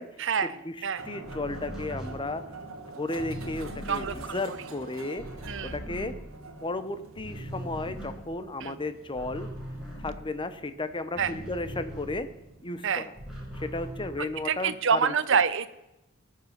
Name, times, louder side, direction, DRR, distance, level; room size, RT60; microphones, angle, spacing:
voice 1, 0.2-0.5 0.8-1.0 3.9-4.4 5.4-5.8 8.6-8.7 11.2-11.3 12.8-13.1 14.2-15.7, right 6 dB, 60° right, 14 dB, 0.8 m, -27 dB
voice 2, 1.0-2.4 2.9-5.2 5.6-6.1 6.6-9.5 10.0-12.3 12.6-13.0 13.5-15.1, left 2 dB, 25° left, 11 dB, 0.8 m, -34 dB
sound 1, 1.0-14.2, right 2 dB, 75° right, 1.7 m, -47 dB
sound 2, 1.2-6.8 7.1-12.6 12.9-14.7, equal, ahead, 5.1 m, -41 dB
19.5 x 6.7 x 5.9 m, 0.92 s
head